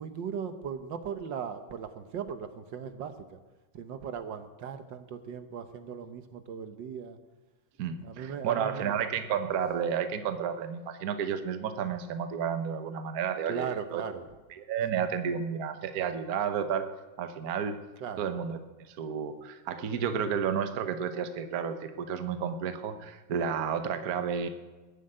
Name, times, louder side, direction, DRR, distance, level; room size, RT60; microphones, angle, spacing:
voice 1, 0.0-3.1 3.7-7.2 8.0-8.9 13.5-14.2 18.0-18.3, right 7 dB, 70° right, 9 dB, 1.6 m, -38 dB
voice 2, 7.8-14.0 14.6-16.9 17.2-17.8 18.2-18.6 18.9-24.5, right 7 dB, 55° right, 9 dB, 1.4 m, -31 dB
20.5 x 7.7 x 8.8 m, 1.2 s
omnidirectional pair, 2.1 m